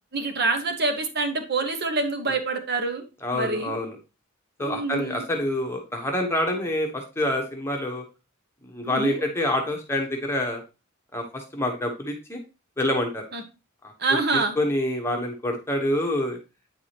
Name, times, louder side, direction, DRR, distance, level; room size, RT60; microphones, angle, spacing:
voice 1, 0.1-3.0 3.3-3.7 4.6-5.2 8.8-9.2 13.3-13.4 14.0-14.5, right 3 dB, 45° right, 6 dB, 1.1 m, -26 dB
voice 2, 3.2-4.0 4.6-8.0 8.6-10.6 11.1-12.4 12.8-13.3 14.3-16.4, left 1 dB, 10° left, 1 dB, 1.0 m, -27 dB
9.1 x 4.8 x 2.9 m, 0.29 s
head